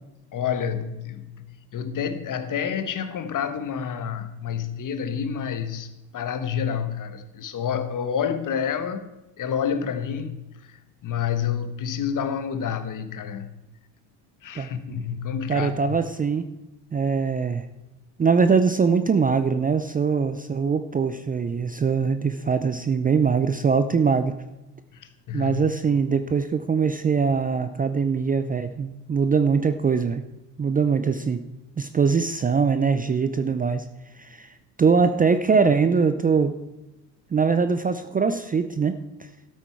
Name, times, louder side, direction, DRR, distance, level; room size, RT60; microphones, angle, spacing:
voice 1, 0.3-1.4 1.7-9.1 9.4-13.5 14.4-16.0 24.9-25.7, left 7 dB, 40° left, 1.3 m, -29 dB
voice 2, 15.5-16.5 16.9-17.6 18.2-24.3 25.3-30.2 30.6-31.4 31.8-33.9 34.2-36.6 37.3-39.0, right 5 dB, 20° right, 0.5 m, -22 dB
13.0 x 8.2 x 4.5 m
supercardioid pair, 85°, 48 cm